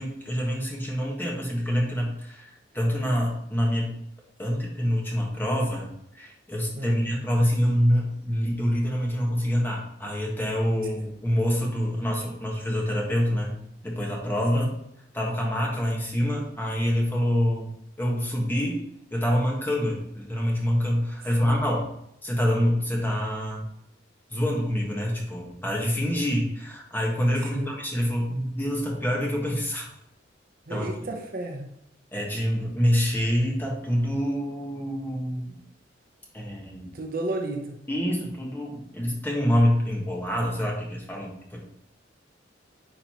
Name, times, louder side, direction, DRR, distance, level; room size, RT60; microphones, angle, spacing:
voice 1, 0.0-3.9 4.4-13.6 13.8-14.7 15.1-17.7 18.0-18.8 19.1-21.9 22.2-23.7 24.3-29.9 30.7-30.9 32.1-35.5 36.3-36.9 37.9-41.6, equal, 10° left, -2 dB, 1.4 m, -26 dB
voice 2, 21.2-21.5 27.4-27.7 30.7-31.8 36.9-37.8, right 2 dB, 50° right, 3 dB, 0.8 m, -33 dB
10.0 x 4.1 x 3.0 m, 0.77 s
head